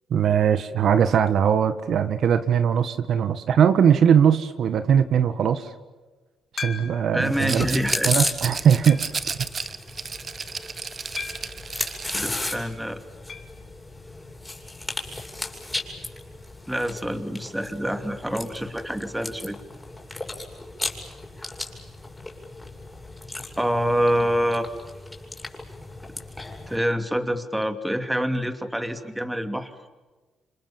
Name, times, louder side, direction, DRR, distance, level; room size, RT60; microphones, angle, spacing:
voice 1, 0.1-5.7 6.6-7.6 8.0-9.0 9.4-9.5, right 8 dB, 65° right, 10 dB, 1.6 m, -20 dB
sound 1, 6.6-7.3 7.9-8.0 8.9-9.3 11.2-11.6 13.3-13.6 13.9-14.0 14.2-14.3 16.3-16.4, left 5 dB, 45° left, 3.0 m, -36 dB
voice 2, 7.1-8.1 12.1-13.0 16.7-19.6 23.6-24.7 26.7-29.7, equal, 5° right, 8 dB, 2.7 m, -26 dB
Chewing mastication, 7.2-26.8, left 2 dB, 10° left, 7.0 m, -35 dB
Rattle, 7.4-12.5, right 5 dB, 40° right, 1.3 m, -33 dB
29.5 x 26.5 x 7.3 m, 1.3 s
cardioid pair, 90°, 0 cm